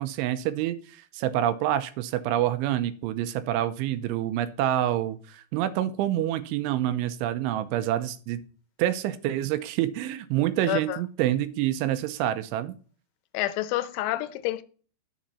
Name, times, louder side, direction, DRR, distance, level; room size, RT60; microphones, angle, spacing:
voice 1, 0.0-8.4 8.8-12.7, right 12 dB, 90° right, 11 dB, 3.1 m, -27 dB
voice 2, 10.7-11.0 13.3-14.6, left 15 dB, 85° left, 13 dB, 3.1 m, -28 dB
10.5 x 7.2 x 4.2 m, 0.40 s
omnidirectional pair, 5.4 m